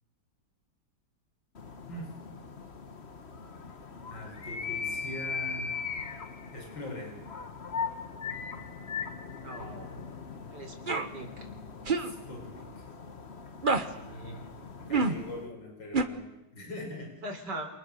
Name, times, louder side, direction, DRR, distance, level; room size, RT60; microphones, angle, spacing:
sound 1, 1.5-15.5, left 5 dB, 35° left, 1.6 m, -40 dB
voice 1, 4.1-5.8 6.5-7.2 11.9-12.9 14.8-17.1, left 1 dB, 85° left, 2 dB, 6.2 m, -42 dB
voice 2, 9.4-10.0 10.5-11.5 12.5-12.7 14.0-14.4 17.2-17.7, right 2 dB, 60° right, 5 dB, 4.6 m, -41 dB
sound 2, 10.9-11.1 11.9-12.1 13.6-13.9 14.9-15.2 15.9-16.0, right 4 dB, 30° right, 1.4 m, -26 dB
29.0 x 28.0 x 6.8 m, 0.90 s
omnidirectional pair, 2.0 m